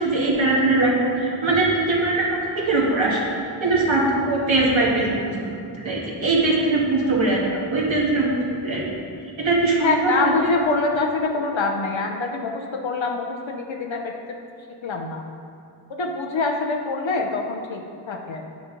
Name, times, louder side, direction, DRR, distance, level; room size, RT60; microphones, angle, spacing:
voice 1, 0.0-3.3 3.6-5.4 5.8-7.4 7.7-8.9 9.4-10.6, right 2 dB, 75° right, -4 dB, 1.5 m, -21 dB
voice 2, 9.8-14.1 14.8-15.2 15.9-17.8 18.1-18.4, left 3 dB, 75° left, 2 dB, 0.7 m, -25 dB
9.3 x 4.9 x 3.7 m, 2.4 s
wide cardioid pair, 45°, 47 cm